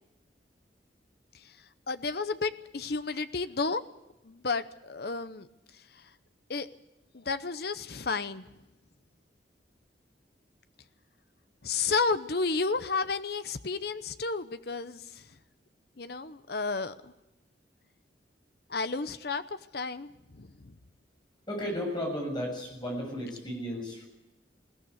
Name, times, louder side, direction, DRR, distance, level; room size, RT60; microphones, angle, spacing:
voice 1, 1.9-3.8 4.2-5.5 6.5-6.7 7.1-8.5 11.6-15.0 16.0-17.1 18.7-19.4 19.7-20.7, left 4 dB, 55° left, 12 dB, 0.8 m, -32 dB
voice 2, 21.5-24.1, equal, 25° left, 1 dB, 7.3 m, -34 dB
21.0 x 16.5 x 8.2 m, 0.96 s
head